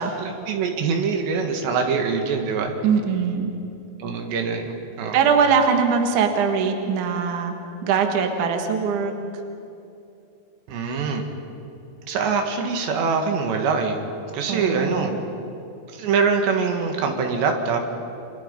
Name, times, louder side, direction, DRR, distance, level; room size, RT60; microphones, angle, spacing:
voice 1, 0.0-2.7 4.0-5.3 10.7-11.2 12.1-14.0 14.3-15.1 16.0-17.8, right 5 dB, 75° right, 4 dB, 3.9 m, -24 dB
voice 2, 2.8-3.5 5.1-7.5 7.8-9.1 14.5-15.2, right 6 dB, 55° right, 4 dB, 2.7 m, -21 dB
29.5 x 26.0 x 5.3 m, 2.7 s
omnidirectional pair, 5.1 m